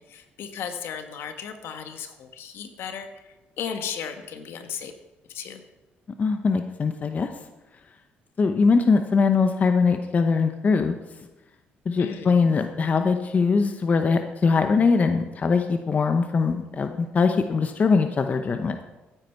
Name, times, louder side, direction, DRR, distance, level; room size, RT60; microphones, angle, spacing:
voice 1, 0.0-4.9 5.3-5.6 12.0-12.5, left 7 dB, 70° left, 7 dB, 1.5 m, -35 dB
voice 2, 6.2-7.3 8.4-10.9 11.9-18.8, left 4 dB, 40° left, 7 dB, 0.9 m, -22 dB
14.5 x 9.6 x 4.6 m, 1.1 s
cardioid pair, 90°, 4 cm